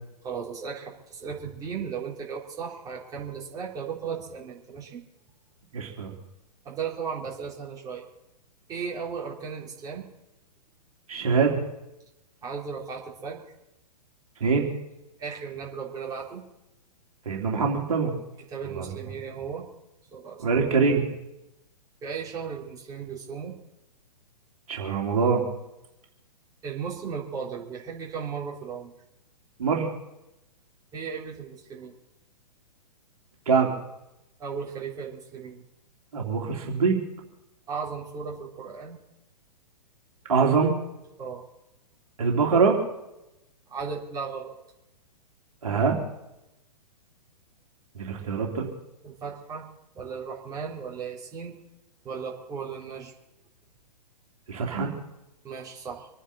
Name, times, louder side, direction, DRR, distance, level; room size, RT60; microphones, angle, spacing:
voice 1, 0.2-5.0 6.7-8.0 8.7-10.0 12.4-13.4 15.2-16.4 18.5-19.7 20.1-20.4 22.0-23.6 26.6-28.9 30.9-31.9 34.4-35.6 37.7-39.0 41.2-41.4 43.7-44.5 49.0-49.7 50.0-51.6 52.0-53.1 55.4-56.1, right 6 dB, 15° right, -4 dB, 3.5 m, -36 dB
voice 2, 5.7-6.1 11.1-11.6 14.4-14.7 17.2-18.1 18.6-18.9 20.4-21.0 24.7-25.4 29.6-29.9 33.5-33.7 36.1-37.0 40.3-40.7 42.2-42.8 45.6-46.0 47.9-48.7 54.5-54.9, right 5 dB, 55° right, 0 dB, 3.1 m, -23 dB
27.0 x 10.0 x 4.2 m, 0.92 s
figure-of-eight pair, 115°, 21 cm